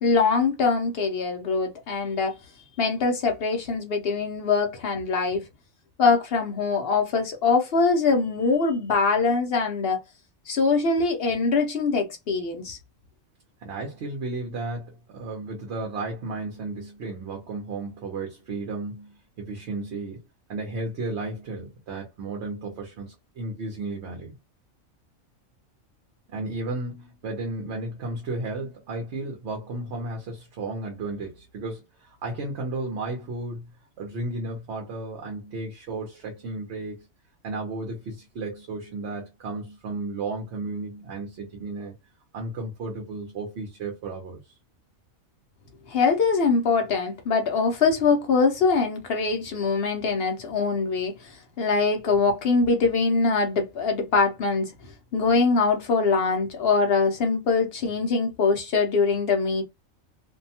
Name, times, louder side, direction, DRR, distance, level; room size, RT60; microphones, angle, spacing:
voice 1, 0.0-2.3 2.8-5.5 6.0-10.0 10.5-12.8 45.9-54.7 55.1-59.6, left 4 dB, 60° left, 0.6 m, -23 dB
voice 2, 13.6-20.2 20.5-24.3 26.3-33.7 34.0-37.1 37.4-41.9 42.3-44.4, right 2 dB, 60° right, 0.9 m, -33 dB
2.6 x 2.2 x 2.7 m
omnidirectional pair, 1.4 m